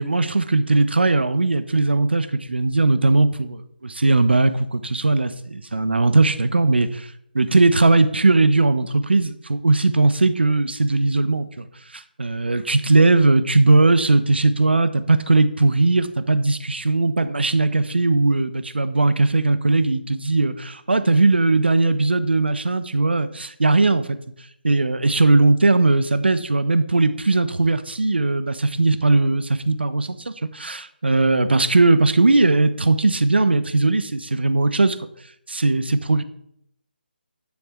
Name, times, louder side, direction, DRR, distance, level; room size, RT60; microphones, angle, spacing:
voice 1, 0.0-11.7 11.9-24.2 24.6-35.0 35.5-36.2, right 3 dB, 75° right, 12 dB, 0.9 m, -19 dB
9.9 x 7.1 x 4.5 m, 0.72 s
figure-of-eight pair, 150°, 6 cm